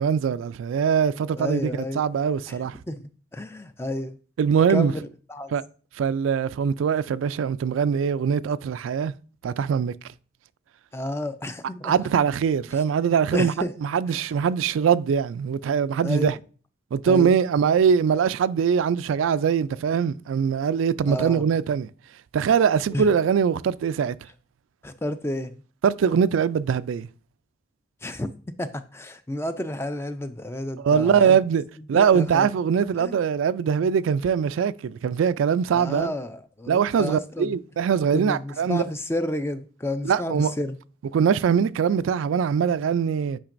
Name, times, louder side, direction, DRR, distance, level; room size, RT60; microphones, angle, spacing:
voice 1, 0.0-1.7 2.0-2.8 4.4-4.9 5.5-5.6 6.0-9.1 9.4-9.9 11.8-13.5 13.8-16.4 16.9-21.9 22.3-24.2 25.8-27.1 30.8-31.6 31.9-36.1 36.7-38.8 40.0-40.5 41.1-43.4, right 7 dB, 85° right, 0.3 m, -22 dB
voice 2, 1.4-2.0 2.5-2.6 2.9-4.2 4.7-5.0 5.3-5.5 10.9-11.9 12.7-12.8 13.3-13.7 14.1-14.2 16.0-16.4 17.0-17.4 21.1-21.4 22.9-23.1 24.8-25.6 28.0-31.4 31.8-32.5 33.0-33.2 35.7-37.5 38.1-40.8, left 1 dB, 15° left, 0.4 m, -31 dB
8.7 x 5.1 x 2.5 m
head